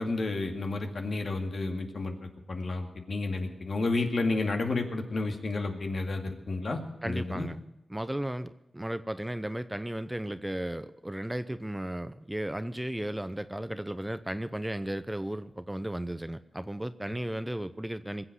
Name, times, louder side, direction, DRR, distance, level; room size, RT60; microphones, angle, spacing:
voice 1, 0.0-7.5, left 3 dB, 65° left, 4 dB, 2.2 m, -31 dB
voice 2, 7.0-7.6 7.9-18.3, right 1 dB, 10° right, 13 dB, 0.7 m, -35 dB
21.0 x 7.9 x 8.0 m, 0.94 s
cardioid pair, 60°, 0 cm